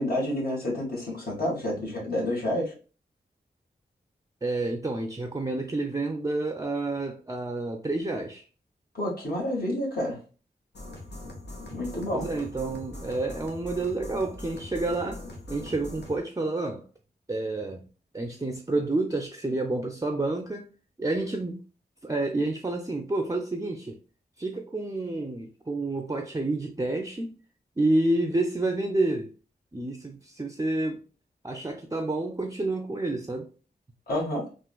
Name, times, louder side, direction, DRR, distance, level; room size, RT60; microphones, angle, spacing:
voice 1, 0.0-2.7 8.9-10.2 11.7-12.3 34.1-34.5, left 1 dB, 60° left, 1.6 m, -29 dB
voice 2, 4.4-8.4 12.1-16.8 17.3-17.9 18.1-20.7 21.0-21.6 22.0-24.0 24.4-27.4 27.8-29.3 29.7-31.0 31.4-33.5, right 2 dB, 20° right, 0.5 m, -29 dB
sound 1, 10.7-16.2, left 1 dB, 80° left, 0.9 m, -41 dB
3.6 x 2.5 x 2.3 m
cardioid pair, 50°, 17 cm